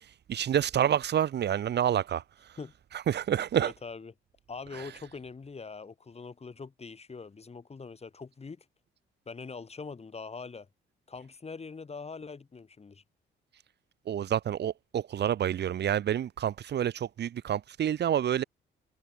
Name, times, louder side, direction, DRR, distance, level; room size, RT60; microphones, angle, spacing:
voice 1, 0.3-2.2 3.1-3.7 14.1-18.4, right 10 dB, 60° right, 1.3 m, -28 dB
voice 2, 3.5-4.1 4.5-8.6 9.3-10.7 11.1-13.0, left 4 dB, 30° left, 6.0 m, -43 dB
cardioid pair, 90°, 20 cm